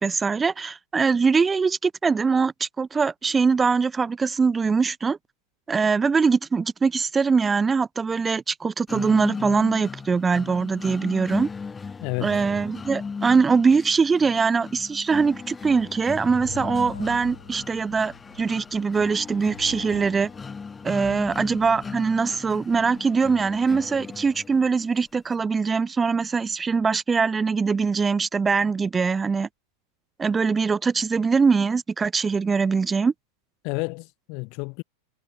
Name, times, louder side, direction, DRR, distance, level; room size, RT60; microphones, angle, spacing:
voice 1, 0.0-5.2 5.7-11.5 12.2-20.3 20.8-29.5 30.2-33.1, right 5 dB, 15° right, 3.4 m, -22 dB
sound 1, 8.9-24.8, left 5 dB, 15° left, 6.8 m, -37 dB
voice 2, 12.0-12.5 33.6-34.8, left 32 dB, 45° left, 3.2 m, -31 dB
sound 2, 15.6-23.7, left 6 dB, 70° left, 5.3 m, -47 dB
figure-of-eight pair, 90°, 0 cm